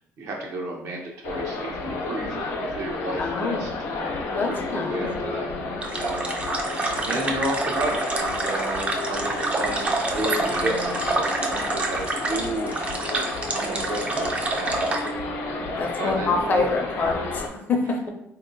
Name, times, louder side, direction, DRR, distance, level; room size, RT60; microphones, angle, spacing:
voice 1, 0.2-3.7 4.0-5.5 5.9-6.7 6.9-12.7 13.5-15.1 16.0-16.7, right 1 dB, 70° right, 0 dB, 0.8 m, -32 dB
sound 1, 1.2-17.5, left 3 dB, 85° left, 0.6 m, -31 dB
voice 2, 3.2-3.6 4.3-5.1 15.8-17.4 17.7-18.0, left 3 dB, 40° left, 2 dB, 0.5 m, -25 dB
sound 2, 5.8-15.1, right 3 dB, 25° right, 0.4 m, -27 dB
3.7 x 2.8 x 2.6 m, 0.80 s
cardioid pair, 135°, 5 cm